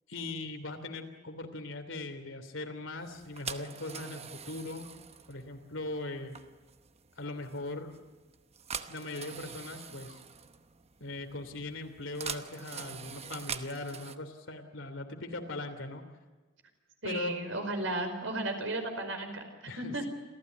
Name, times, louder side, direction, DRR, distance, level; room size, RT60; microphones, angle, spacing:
voice 1, 0.1-4.9 5.3-6.4 7.2-7.9 8.9-10.2 11.0-16.0 17.0-17.3 19.7-20.1, left 2 dB, 90° left, 7 dB, 3.0 m, -40 dB
sound 1, 3.1-14.2, right 6 dB, 35° right, 1.0 m, -44 dB
voice 2, 17.0-19.5 19.8-20.1, right 2 dB, 80° right, 5 dB, 5.0 m, -34 dB
27.5 x 15.0 x 9.3 m, 1.3 s
head